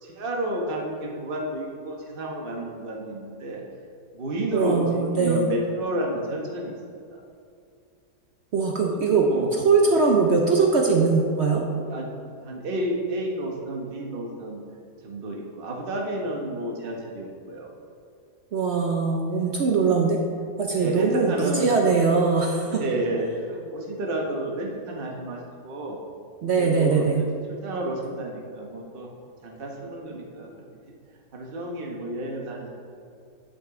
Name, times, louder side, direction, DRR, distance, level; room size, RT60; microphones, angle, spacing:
voice 1, 0.0-3.6 4.1-6.8 7.1-7.2 8.8-9.5 11.9-14.6 15.0-17.7 18.8-18.9 19.3-19.6 20.7-21.7 22.7-26.0 26.6-27.3 27.6-29.1 29.4-30.5 31.3-32.7, right 1 dB, 40° right, 0 dB, 1.1 m, -31 dB
voice 2, 4.5-5.5 8.5-11.6 18.5-20.2 20.6-22.8 26.4-27.2, right 4 dB, 65° right, 1 dB, 0.7 m, -21 dB
11.0 x 5.3 x 3.7 m, 2.4 s
omnidirectional pair, 1.8 m